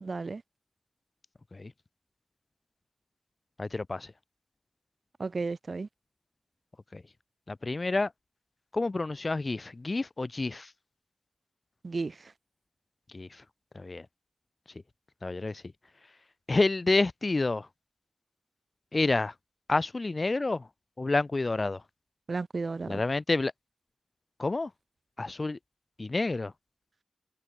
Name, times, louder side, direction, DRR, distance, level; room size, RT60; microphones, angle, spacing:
voice 1, 0.0-0.4 5.2-5.9 11.8-12.3 22.3-23.0, right 3 dB, 50° right, 0.5 m, -33 dB
voice 2, 3.6-4.1 6.9-7.0 7.5-8.1 8.7-10.7 13.1-13.4 13.7-14.1 15.2-15.6 16.5-17.7 18.9-19.3 19.7-20.7 21.0-21.8 22.9-23.5 24.4-24.7 25.2-25.6 26.0-26.5, left 3 dB, 35° left, 0.5 m, -29 dB
wide cardioid pair, 85°, 0 cm